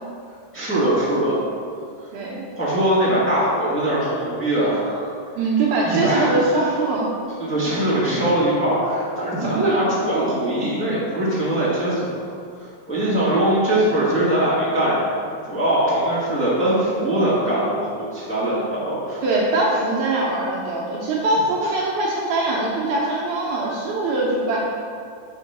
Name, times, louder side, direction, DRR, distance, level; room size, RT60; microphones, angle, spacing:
voice 1, 0.5-1.4 2.5-5.1 5.8-6.3 7.4-12.0 12.9-15.1 15.5-19.2, right 1 dB, 15° left, -10 dB, 0.4 m, -21 dB
voice 2, 2.1-2.5 5.4-7.1 9.4-9.6 19.2-24.6, right 2 dB, 70° right, -4 dB, 2.0 m, -22 dB
6.2 x 5.0 x 5.8 m, 2.4 s
omnidirectional pair, 4.1 m